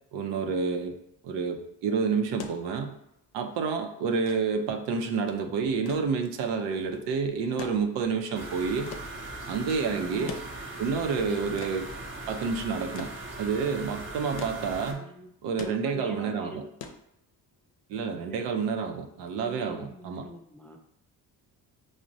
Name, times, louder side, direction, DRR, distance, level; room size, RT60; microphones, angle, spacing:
voice 1, 0.1-1.0 1.2-2.9 3.3-8.9 9.4-10.4 10.8-11.9 12.3-13.1 13.4-15.1 15.4-16.6 17.9-20.3, right 5 dB, 80° right, 5 dB, 0.6 m, -29 dB
sound 1, 2.4-17.7 18.9-19.0, left 6 dB, 65° left, 0.6 m, -46 dB
sound 2, 8.3-14.9, right 2 dB, 30° right, 0.8 m, -39 dB
voice 2, 9.9-10.4 14.9-15.3 15.6-16.7 18.3-18.4 19.4-20.8, right 1 dB, 5° left, 2 dB, 0.3 m, -44 dB
4.7 x 2.1 x 2.6 m, 0.74 s
supercardioid pair, 60°, 42 cm